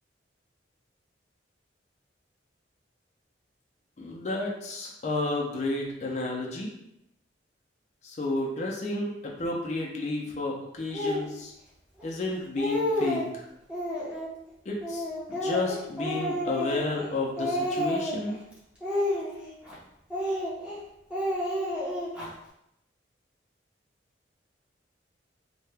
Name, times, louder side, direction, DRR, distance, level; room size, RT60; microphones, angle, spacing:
voice 1, 4.0-6.7 8.0-11.5 12.0-13.4 14.7-15.0 15.3-18.4, left 2 dB, 40° left, -2 dB, 0.4 m, -31 dB
Speech, 10.9-11.3 12.0-12.1 12.4-13.3 13.7-14.3 14.8-17.1 17.4-18.3 18.8-19.7 20.1-20.8 21.1-22.3, left 1 dB, 5° right, 0.7 m, -30 dB
2.7 x 2.1 x 3.3 m, 0.81 s
head